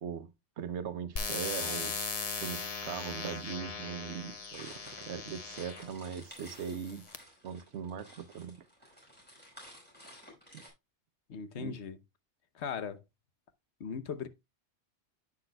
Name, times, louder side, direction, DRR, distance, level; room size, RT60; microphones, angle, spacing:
voice 1, 0.6-1.9 2.4-7.0 7.4-8.6 10.5-10.6 11.5-11.7, right 7 dB, 75° right, 1.0 m, -40 dB
sound 1, 1.2-5.9 6.6-7.2, left 4 dB, 35° left, 0.8 m, -38 dB
sound 2, 4.5-10.7, equal, 10° left, 4.8 m, -54 dB
voice 2, 11.3-12.0 12.5-13.0 13.8-14.3, left 6 dB, 75° left, 1.1 m, -38 dB
10.0 x 8.8 x 2.2 m
omnidirectional pair, 1.2 m